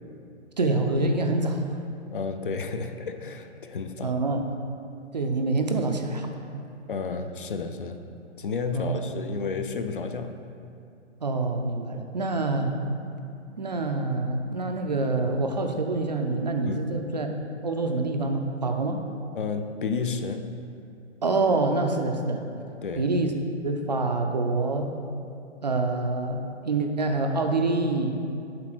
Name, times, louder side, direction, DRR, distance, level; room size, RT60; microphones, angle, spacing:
voice 1, 0.6-1.7 4.0-4.4 5.1-6.3 6.5-6.6 8.7-9.1 11.2-12.7 13.6-17.3 17.6-19.0 21.2-22.5 23.0-23.3 23.6-24.9 25.6-28.2, right 3 dB, 40° right, 4 dB, 0.4 m, -26 dB
voice 2, 2.1-4.2 6.9-8.0 8.4-10.4 16.7-16.8 19.3-20.5 22.8-23.1, left 4 dB, 50° left, 8 dB, 0.4 m, -31 dB
7.6 x 4.1 x 5.9 m, 2.5 s
hypercardioid pair, 165°, 35 cm